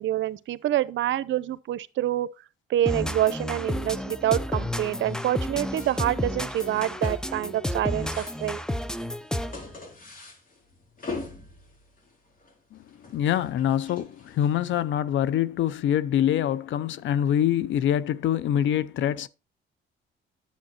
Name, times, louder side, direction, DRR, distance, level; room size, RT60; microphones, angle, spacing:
voice 1, 0.0-2.3 2.7-8.6, right 13 dB, 75° right, 0.7 m, -27 dB
sound 1, 2.9-9.7, left 1 dB, 5° left, 0.7 m, -31 dB
sound 2, 5.1-5.4 5.7-6.1 6.5-7.6 7.8-14.8, left 3 dB, 45° left, 3.5 m, -43 dB
voice 2, 13.1-19.3, left 10 dB, 75° left, 0.7 m, -25 dB
10.0 x 7.2 x 4.3 m
cardioid pair, 90°, 20 cm